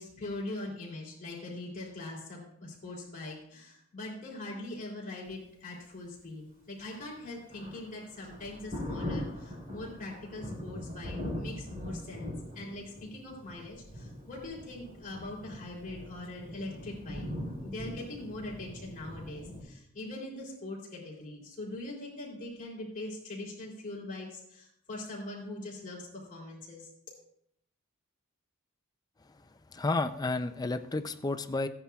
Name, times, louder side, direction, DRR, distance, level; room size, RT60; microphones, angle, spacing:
voice 1, 0.0-17.2 17.6-26.9, left 2 dB, 40° left, -3 dB, 3.3 m, -42 dB
Thunder, 6.8-19.6, left 1 dB, 45° right, 3.9 m, -41 dB
voice 2, 29.7-31.7, left 2 dB, 20° left, 9 dB, 0.4 m, -31 dB
16.0 x 9.9 x 2.4 m, 0.72 s
head